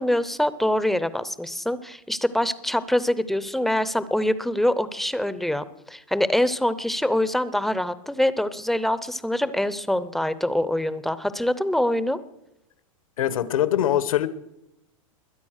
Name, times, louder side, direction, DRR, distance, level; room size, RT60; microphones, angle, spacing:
voice 1, 0.0-12.2, left 1 dB, ahead, 0.6 m, -24 dB
voice 2, 13.2-14.3, left 11 dB, 80° left, 1.3 m, -22 dB
21.5 x 9.5 x 6.5 m
hypercardioid pair, 145°, 17 cm